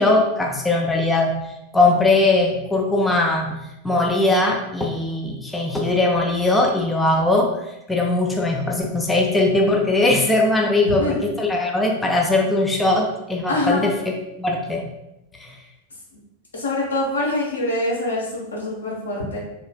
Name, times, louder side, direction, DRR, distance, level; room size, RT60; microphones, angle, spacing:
voice 1, 0.0-1.3 1.7-3.6 3.8-7.6 7.9-13.9 14.4-14.8 15.4-15.5, left 2 dB, 10° left, 0 dB, 0.4 m, -20 dB
voice 2, 10.9-11.2 13.5-13.9 16.5-19.4, left 2 dB, 75° left, -4 dB, 1.0 m, -24 dB
3.1 x 3.0 x 2.2 m, 0.90 s
figure-of-eight pair, 90°, 0 cm